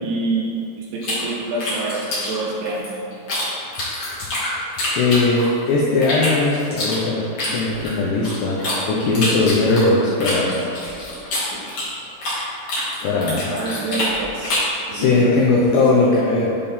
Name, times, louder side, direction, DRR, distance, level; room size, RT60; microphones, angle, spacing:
voice 1, 0.0-0.5 0.8-2.9 13.5-14.6 14.9-15.5, right 2 dB, 80° right, -2 dB, 2.8 m, -27 dB
sound 1, 1.0-3.4 3.7-5.6 6.0-8.8 9.1-12.4 12.7-14.8, left 1 dB, 70° left, 1.4 m, -26 dB
voice 2, 5.0-7.3 7.5-8.6 8.9-10.6 13.0-13.5 14.9-16.6, left 3 dB, 85° left, -4 dB, 2.4 m, -19 dB
10.5 x 4.2 x 3.6 m, 2.6 s
omnidirectional pair, 5.8 m